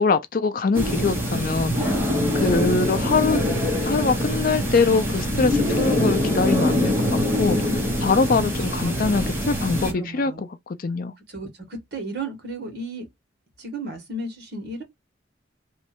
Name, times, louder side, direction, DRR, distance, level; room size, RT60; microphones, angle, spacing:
voice 1, 0.0-1.7 2.4-3.4 3.8-7.7 8.0-11.1, left 4 dB, 45° left, 0.4 m, -23 dB
sound 1, 0.7-9.9, left 1 dB, 10° right, 1.1 m, -24 dB
voice 2, 1.8-2.3 8.4-9.4 9.8-10.4 11.3-13.1 13.6-14.8, right 2 dB, 55° right, 1.7 m, -34 dB
3.1 x 2.5 x 4.4 m
head